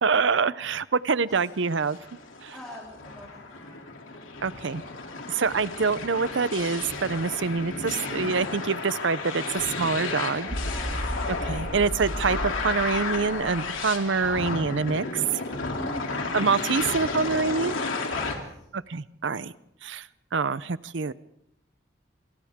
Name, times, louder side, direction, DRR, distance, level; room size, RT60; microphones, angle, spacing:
voice 1, 0.0-2.0 2.4-2.5 4.4-4.8 5.3-10.6 11.3-15.2 16.3-17.8 18.7-19.5 19.8-21.1, right 4 dB, 70° right, 17 dB, 0.7 m, -26 dB
sound 1, 1.5-18.3, left 3 dB, 90° left, 3.1 m, -33 dB
voice 2, 2.2-3.9 7.8-7.9 10.5-11.0 15.7-16.2 18.1-18.5, equal, 5° left, -5 dB, 3.0 m, -43 dB
sound 2, 10.5-14.4, equal, 40° right, 1.4 m, -34 dB
27.0 x 26.5 x 3.7 m, 0.80 s
head